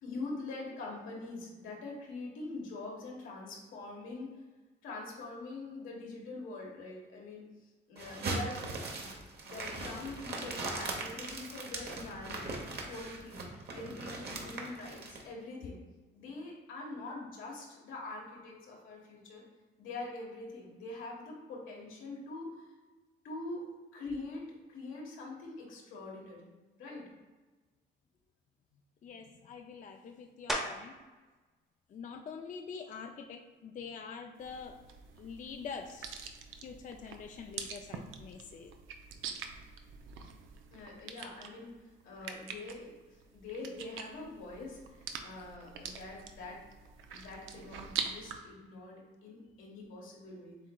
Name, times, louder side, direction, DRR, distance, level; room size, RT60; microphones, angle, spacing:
voice 1, 0.0-4.3 4.8-9.1 9.4-15.8 16.1-19.4 19.8-22.7 23.2-23.7 23.9-26.4 26.8-27.1 40.7-41.7 42.0-46.6 47.1-50.6, left 2 dB, 85° left, -3 dB, 1.4 m, -44 dB
sound 1, 8.0-15.2, right 3 dB, 55° right, 1.0 m, -40 dB
voice 2, 29.0-30.9 31.9-34.7 35.1-36.3 36.6-38.7, left 5 dB, 40° left, 4 dB, 0.4 m, -45 dB
sound 2, 30.5-31.1 31.6-36.1 36.6-41.8 42.0-47.7, equal, ahead, 0.9 m, -47 dB
sound 3, 34.4-48.4, right 7 dB, 85° right, 0.5 m, -44 dB
7.3 x 3.1 x 2.3 m, 1.3 s
cardioid pair, 90°, 20 cm